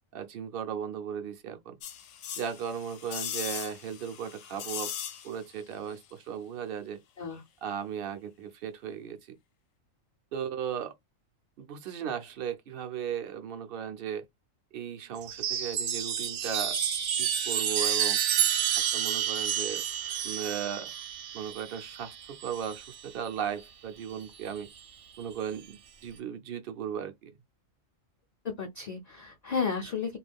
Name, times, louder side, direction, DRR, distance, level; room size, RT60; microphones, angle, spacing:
voice 1, 0.1-1.8 2.4-4.9 5.2-7.0 7.6-9.2 10.3-10.9 11.6-14.3 14.7-16.8 17.2-18.2 18.9-19.8 20.2-20.9 21.3-24.7 25.2-27.1, right 8 dB, 60° right, 0.6 m, -36 dB
sound 1, 1.8-5.6 5.9-6.0, left 9 dB, 75° left, 0.9 m, -39 dB
Chime, 15.2-23.0 24.2-24.8, right 9 dB, 75° right, 1.0 m, -30 dB
voice 2, 28.4-30.2, left 5 dB, 50° left, 0.5 m, -33 dB
2.4 x 2.2 x 3.4 m
omnidirectional pair, 1.4 m